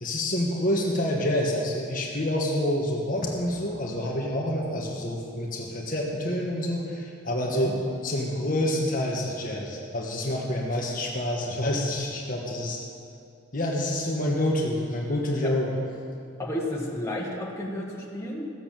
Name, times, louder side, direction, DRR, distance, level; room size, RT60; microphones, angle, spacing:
voice 1, 0.0-7.7 8.0-12.8 13.5-15.7, left 1 dB, 45° left, -1 dB, 1.4 m, -27 dB
voice 2, 16.4-18.5, left 1 dB, 15° left, -4 dB, 1.7 m, -32 dB
15.5 x 6.9 x 7.5 m, 2.4 s
head